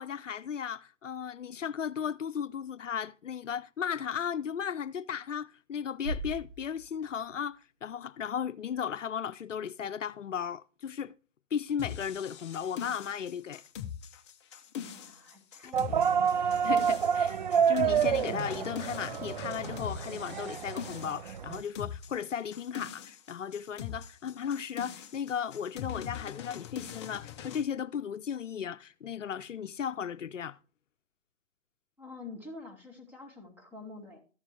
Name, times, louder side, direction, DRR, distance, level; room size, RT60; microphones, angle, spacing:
voice 1, 0.0-11.1 11.5-13.6 16.6-30.6, left 8 dB, 85° left, 0.6 m, -35 dB
Bass drum, 6.0-7.7, right 1 dB, 85° right, 2.6 m, -40 dB
sound 1, 11.8-27.6, left 9 dB, 25° left, 0.7 m, -42 dB
voice 2, 14.7-16.4 32.0-34.2, left 3 dB, 5° right, 2.2 m, -47 dB
sound 2, 15.7-21.6, right 7 dB, 40° right, 0.4 m, -28 dB
14.0 x 7.2 x 3.4 m
figure-of-eight pair, 140°, 36 cm